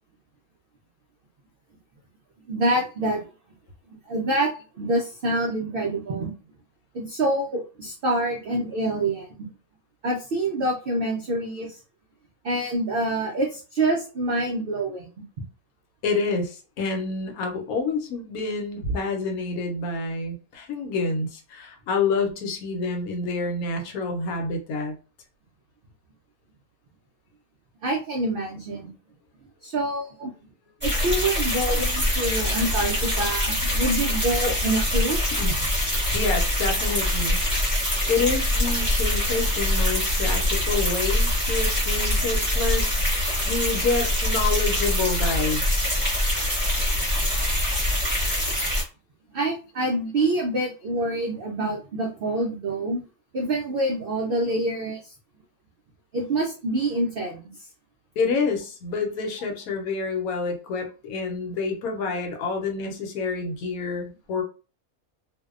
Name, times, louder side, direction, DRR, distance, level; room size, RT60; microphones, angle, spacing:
voice 1, 2.5-3.2 4.1-4.5 4.8-6.3 6.9-9.5 10.0-11.8 12.4-15.1 27.8-28.9 29.6-30.3 30.8-35.4 49.3-53.0 53.3-55.1 56.1-57.4, right 1 dB, 80° right, 0 dB, 0.5 m, -26 dB
voice 2, 16.0-24.9 35.4-35.5 35.9-37.4 38.1-45.9 58.2-64.4, left 4 dB, 80° left, 4 dB, 1.1 m, -28 dB
sound 1, 30.8-48.8, left 1 dB, 10° right, 1.0 m, -24 dB
2.6 x 2.1 x 2.4 m, 0.35 s
omnidirectional pair, 1.5 m